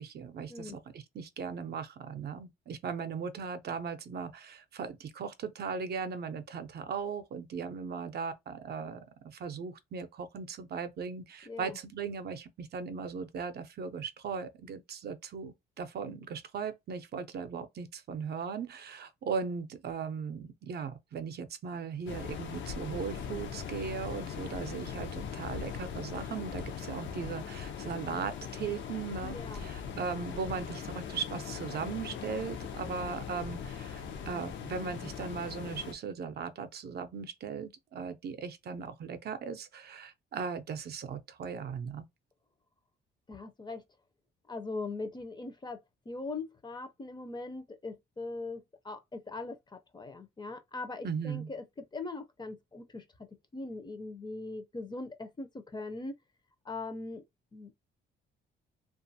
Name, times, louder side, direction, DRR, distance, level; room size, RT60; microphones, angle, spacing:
voice 1, 0.0-42.1 51.0-51.5, right 6 dB, 55° right, 0.5 m, -38 dB
voice 2, 11.5-11.8 29.2-29.6 43.3-43.8 44.5-45.8 46.1-51.6 51.9-53.0 53.5-56.2 56.7-57.2 57.5-57.7, left 3 dB, 20° left, 0.5 m, -40 dB
sound 1, 22.1-35.9, left 7 dB, 70° left, 0.6 m, -40 dB
2.5 x 2.4 x 2.6 m
cardioid pair, 90°, 20 cm